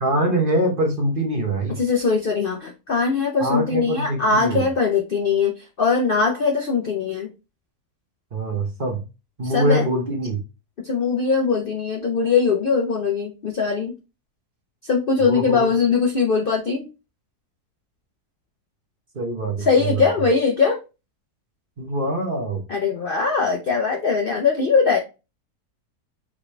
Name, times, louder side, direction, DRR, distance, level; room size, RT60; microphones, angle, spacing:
voice 1, 0.0-1.8 3.4-4.6 8.3-9.0 9.4-10.4 15.2-15.7 19.1-20.1 21.8-22.6, right 1 dB, 40° right, 0 dB, 0.9 m, -23 dB
voice 2, 1.8-7.3 9.4-9.9 10.8-13.9 14.8-16.9 19.6-20.8 22.7-25.0, left 5 dB, 55° left, 1 dB, 0.6 m, -21 dB
4.8 x 3.3 x 3.1 m, 0.29 s
omnidirectional pair, 1.7 m